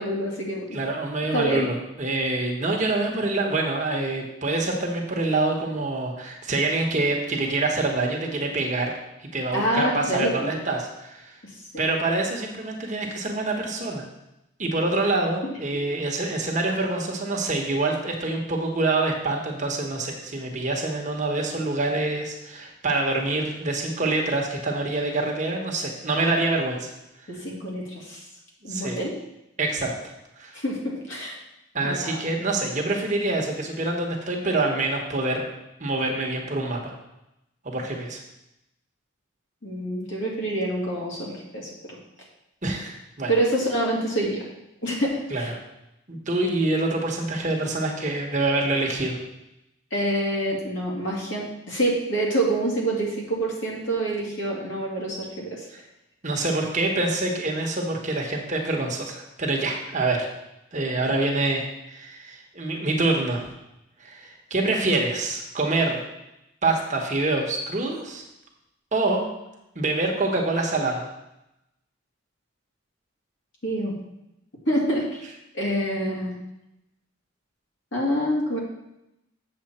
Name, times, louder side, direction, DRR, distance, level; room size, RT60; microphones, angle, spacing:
voice 1, 0.0-0.8 1.3-1.7 9.5-10.6 27.3-28.2 28.6-29.1 30.5-31.4 31.8-32.2 39.6-42.0 43.3-44.4 44.8-45.5 49.9-55.7 73.6-73.9 74.7-75.2 75.5-76.3 77.9-78.6, right 1 dB, 60° left, -3 dB, 2.4 m, -26 dB
voice 2, 0.7-8.9 9.3-11.4 11.8-14.1 14.6-26.9 28.6-29.0 29.6-29.9 30.4-30.5 31.7-35.4 35.8-36.9 37.6-38.2 42.6-43.3 45.3-45.4 46.1-49.2 55.7-55.8 56.2-60.3 60.7-63.5 64.0-66.0 66.6-68.2 68.9-69.3 69.7-71.1, right 2 dB, 35° right, 1 dB, 1.2 m, -26 dB
7.7 x 7.0 x 4.3 m, 0.89 s
head